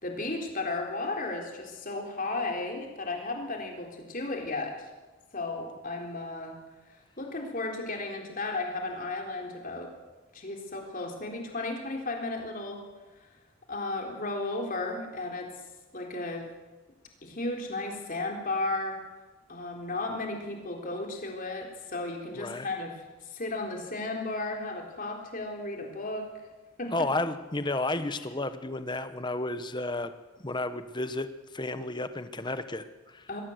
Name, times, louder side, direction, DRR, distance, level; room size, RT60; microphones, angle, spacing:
voice 1, 0.0-4.9 5.3-6.6 7.2-9.9 10.3-12.8 13.7-15.5 15.9-16.5 17.2-19.0 19.5-26.3 26.8-27.1 28.2-28.3 33.3-33.4, left 2 dB, 40° left, 1 dB, 3.9 m, -34 dB
voice 2, 22.4-22.7 26.9-30.1 30.4-33.3, left 2 dB, 20° left, 10 dB, 1.0 m, -32 dB
22.0 x 17.0 x 7.9 m, 1.2 s
head